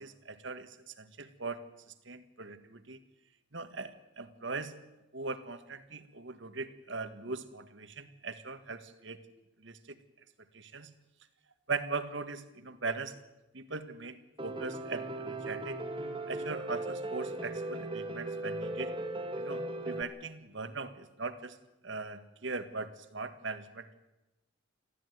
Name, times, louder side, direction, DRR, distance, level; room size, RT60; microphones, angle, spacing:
voice 1, 0.0-1.6 2.1-3.0 3.5-4.7 5.1-9.2 9.6-9.8 10.5-10.9 11.7-13.1 13.5-15.8 16.3-18.9 19.4-21.6 21.8-23.9, right 3 dB, 65° right, 10 dB, 1.7 m, -40 dB
Piano, 14.4-20.0, right 2 dB, 25° right, 2.0 m, -37 dB
23.0 x 15.0 x 9.5 m, 0.98 s
head